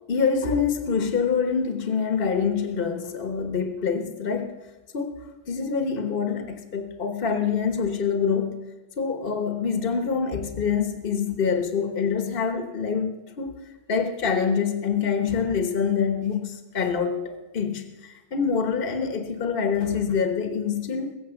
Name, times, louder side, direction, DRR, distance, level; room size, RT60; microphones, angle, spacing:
voice 1, 0.1-4.5 4.9-5.1 5.5-8.6 9.0-13.6 13.9-21.1, left 6 dB, 55° left, 6 dB, 1.4 m, -25 dB
21.5 x 7.4 x 7.0 m, 1.1 s
omnidirectional pair, 1.1 m